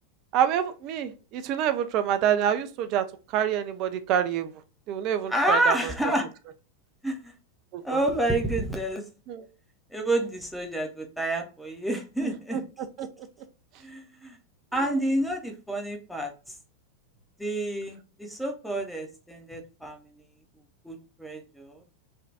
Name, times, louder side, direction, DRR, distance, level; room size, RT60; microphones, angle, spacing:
voice 1, 0.3-3.0 3.3-4.5 4.9-5.8 7.7-8.0 9.3-9.4 12.2-12.6 13.0-13.1 14.9-15.0, right 9 dB, 40° right, 10 dB, 0.4 m, -27 dB
voice 2, 5.3-6.3 7.0-7.3 7.8-9.0 9.9-12.6 13.8-14.4 14.7-16.5 17.4-20.0 20.8-21.8, right 1 dB, ahead, 3 dB, 0.6 m, -29 dB
3.3 x 2.2 x 2.7 m, 0.33 s
figure-of-eight pair, 90°, 0 cm